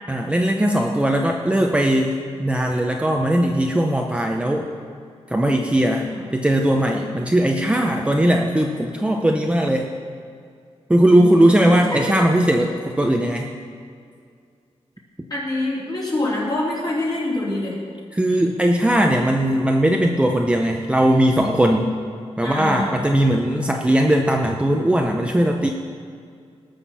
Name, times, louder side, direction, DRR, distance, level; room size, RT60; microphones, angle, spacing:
voice 1, 0.1-4.7 5.3-9.9 10.9-13.5 18.1-21.9 22.4-25.7, right 1 dB, 10° right, 1 dB, 0.6 m, -19 dB
voice 2, 11.1-12.0 15.3-17.8 22.4-23.0, left 2 dB, 35° left, -6 dB, 3.4 m, -26 dB
19.0 x 6.5 x 5.6 m, 2.3 s
wide cardioid pair, 165°, 11 cm